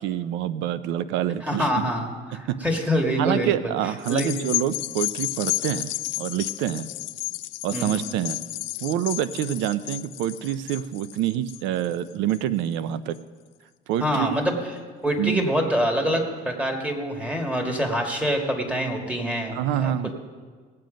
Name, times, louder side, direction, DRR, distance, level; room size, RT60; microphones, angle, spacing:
voice 1, 0.0-1.7 2.5-2.6 3.2-6.9 7.6-8.4 8.8-13.2 13.9-14.3 15.2-15.5 19.5-20.1, right 11 dB, 80° right, 15 dB, 0.6 m, -27 dB
voice 2, 1.4-3.5 4.1-4.4 7.7-8.1 14.0-14.7 15.0-20.1, equal, 5° right, 2 dB, 2.0 m, -25 dB
sound 1, 4.0-12.7 13.1-13.2, left 18 dB, 85° left, 0.5 m, -32 dB
18.0 x 7.7 x 5.2 m, 1.5 s
cardioid pair, 120°, 19 cm